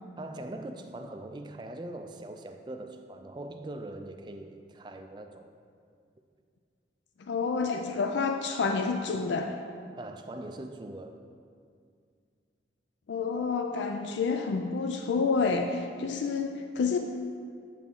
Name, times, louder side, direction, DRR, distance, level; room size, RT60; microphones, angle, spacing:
voice 1, 0.2-5.5 10.0-11.2, right 1 dB, 25° right, 6 dB, 0.4 m, -41 dB
voice 2, 7.3-9.6 13.1-17.0, left 4 dB, 80° left, 5 dB, 0.4 m, -29 dB
8.2 x 6.0 x 3.7 m, 2.2 s
head